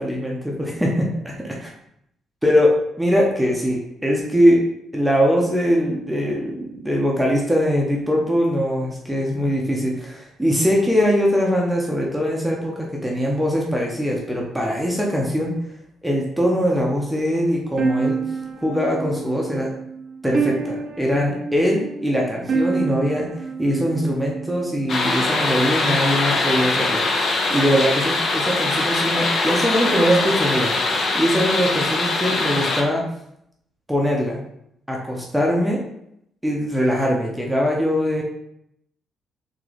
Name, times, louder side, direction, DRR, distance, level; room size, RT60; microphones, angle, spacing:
voice 1, 0.0-1.5 2.4-4.6 4.9-15.5 16.0-18.2 18.6-19.7 20.2-23.3 23.6-33.1 33.9-34.4 34.9-35.8 36.4-38.2, equal, 5° right, -2 dB, 0.7 m, -21 dB
sound 1, 17.8-24.9, right 4 dB, 45° right, 0.6 m, -27 dB
sound 2, 24.9-32.8, left 3 dB, 50° left, 0.6 m, -22 dB
3.7 x 2.9 x 3.2 m, 0.77 s
cardioid pair, 90°, 0 cm